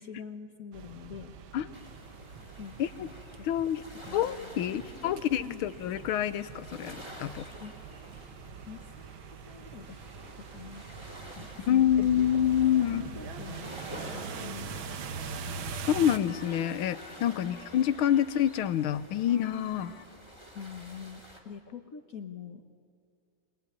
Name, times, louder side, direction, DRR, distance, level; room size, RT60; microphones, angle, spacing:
voice 1, 0.0-1.3 2.6-3.1 3.4-3.5 3.8-5.6 7.6-7.7 8.6-10.0 10.4-10.8 11.3-11.9 12.7-13.7 14.0-14.8 17.2-17.6 20.5-22.6, left 7 dB, 50° left, 5 dB, 1.3 m, -45 dB
sound 1, 0.7-16.2, right 6 dB, 80° right, 1.8 m, -43 dB
sound 2, 1.7-21.4, equal, 15° right, 3.3 m, -49 dB
voice 2, 3.4-3.8 4.1-7.5 11.7-13.2 15.9-19.9, left 10 dB, 85° left, 14 dB, 1.6 m, -27 dB
sound 3, 13.0-20.1, left 4 dB, 35° left, 1.5 m, -53 dB
24.5 x 21.0 x 9.6 m, 2.2 s
omnidirectional pair, 2.2 m